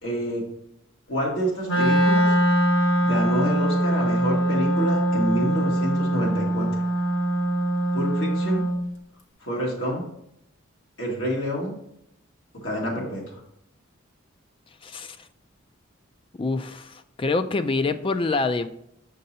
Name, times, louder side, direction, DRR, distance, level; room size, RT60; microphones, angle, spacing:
voice 1, 0.0-0.4 1.1-2.3 3.0-6.8 7.9-8.6 9.4-10.0 11.0-11.7 12.5-13.4, equal, 65° left, -3 dB, 2.0 m, -28 dB
Wind instrument woodwind instrument, 1.6-8.8, right 1 dB, 85° left, 1.1 m, -22 dB
voice 2, 14.8-15.3 16.4-18.7, left 3 dB, 25° left, 10 dB, 0.3 m, -26 dB
6.4 x 5.3 x 2.8 m, 0.75 s
head